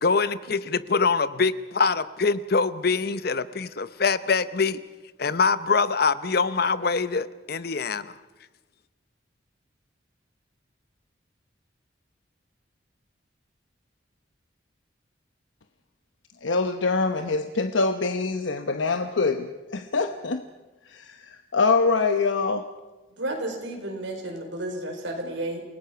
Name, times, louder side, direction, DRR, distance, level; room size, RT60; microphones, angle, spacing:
voice 1, 0.0-4.8 5.2-8.1, left 4 dB, 55° left, 15 dB, 0.8 m, -24 dB
voice 2, 16.4-20.4 20.9-22.6, left 4 dB, 85° left, 7 dB, 0.9 m, -24 dB
voice 3, 23.2-25.6, right 1 dB, 80° right, 2 dB, 4.8 m, -32 dB
29.0 x 18.5 x 5.8 m, 1.1 s
head